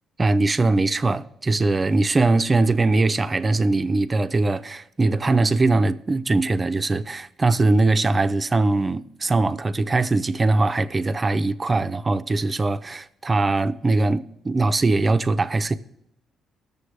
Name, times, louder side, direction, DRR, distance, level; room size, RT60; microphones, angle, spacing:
voice 1, 0.2-15.7, right 3 dB, 30° right, 0.5 m, -21 dB
19.0 x 6.9 x 3.3 m
cardioid pair, 90°, 0 cm